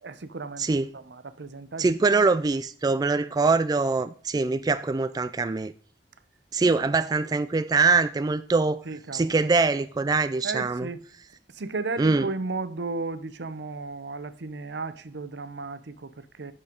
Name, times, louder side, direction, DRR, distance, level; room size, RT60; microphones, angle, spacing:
voice 1, 0.0-0.7 0.9-1.8 2.1-2.2 6.6-6.7 8.9-9.4 10.4-11.0 11.5-16.5, right 3 dB, 75° right, 0.7 m, -34 dB
voice 2, 0.6-0.9 1.8-5.7 6.5-8.8 9.1-10.9 12.0-12.3, right 4 dB, 20° right, 0.3 m, -23 dB
8.4 x 6.7 x 5.1 m
head